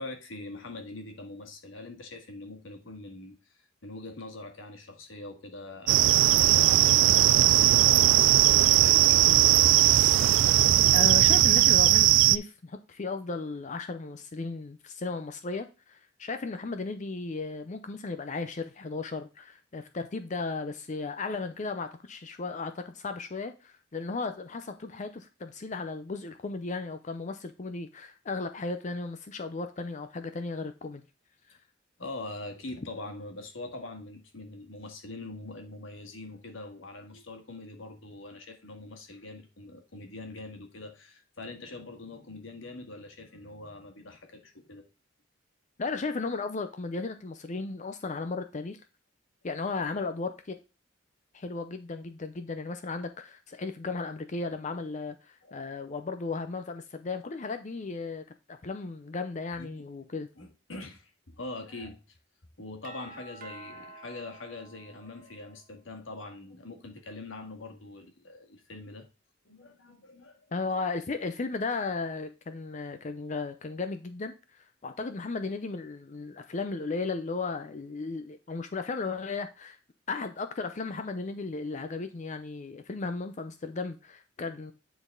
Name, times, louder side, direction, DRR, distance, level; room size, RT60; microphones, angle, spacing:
voice 1, 0.0-9.8 31.5-31.6 32.0-44.9 55.4-55.7 59.6-59.8 60.4-62.0 62.6-69.1 69.5-70.5, left 2 dB, 90° left, 1.7 m, -43 dB
sound 1, 5.9-12.4, right 14 dB, 75° right, 0.3 m, -19 dB
voice 2, 10.9-31.0 45.8-48.8 49.4-50.6 51.3-60.3 70.5-79.8 80.1-84.7, left 3 dB, 40° left, 0.5 m, -35 dB
Doorbell, 62.8-65.7, right 2 dB, 45° right, 1.1 m, -49 dB
9.5 x 4.0 x 3.7 m
head